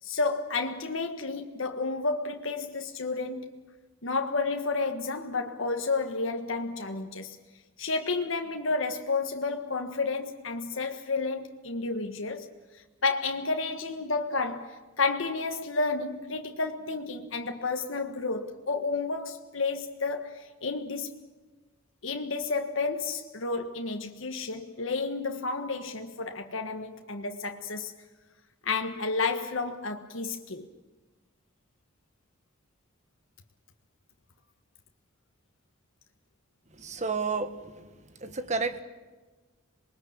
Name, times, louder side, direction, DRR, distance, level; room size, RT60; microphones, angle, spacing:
voice 1, 0.0-3.7 4.0-7.4 7.8-12.5 13.0-21.1 22.0-27.9 28.6-30.7, left 3 dB, 75° left, 1.5 m, -31 dB
voice 2, 36.8-37.6 38.2-38.8, right 4 dB, 35° right, 1.6 m, -30 dB
27.0 x 21.0 x 8.8 m
head